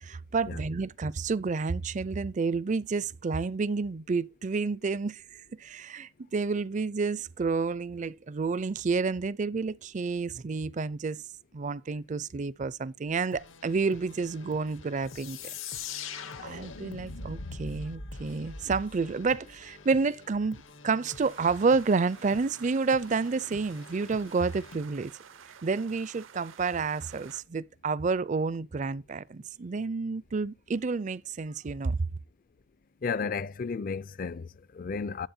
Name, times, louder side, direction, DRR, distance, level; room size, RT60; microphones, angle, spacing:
voice 1, 0.0-11.2 11.5-15.4 16.4-25.1 25.6-32.0, right 4 dB, 40° right, 0.4 m, -30 dB
sound 1, 13.3-24.8, left 3 dB, 70° left, 0.9 m, -51 dB
sound 2, 15.1-19.6, left 4 dB, 90° left, 1.3 m, -41 dB
sound 3, 21.1-27.4, right 7 dB, 75° right, 0.7 m, -51 dB
voice 2, 33.0-35.3, left 5 dB, 45° left, 0.4 m, -33 dB
11.5 x 7.7 x 2.7 m
head